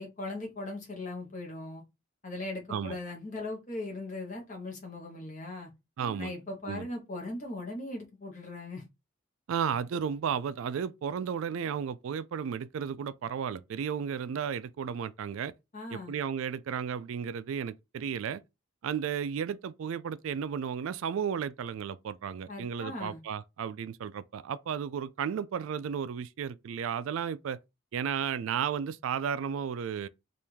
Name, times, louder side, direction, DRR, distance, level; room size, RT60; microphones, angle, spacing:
voice 1, 0.0-1.8 2.2-5.7 6.2-8.8 15.7-16.2 22.5-23.2, left 2 dB, 35° left, 1.1 m, -39 dB
voice 2, 6.0-6.3 6.7-6.9 9.5-15.5 15.9-18.4 18.8-27.6 27.9-30.1, right 7 dB, 70° right, 0.3 m, -33 dB
3.4 x 2.5 x 4.5 m
head